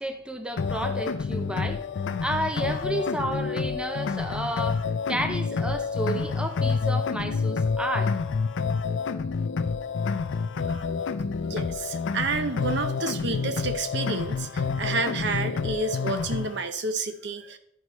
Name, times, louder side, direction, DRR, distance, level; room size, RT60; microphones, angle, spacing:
voice 1, 0.0-1.8 2.2-8.1, right 1 dB, 5° right, 0.5 m, -31 dB
sound 1, 0.6-16.6, left 5 dB, 70° left, 0.4 m, -28 dB
voice 2, 11.4-17.6, right 3 dB, 60° right, 0.7 m, -30 dB
11.0 x 4.6 x 4.1 m
head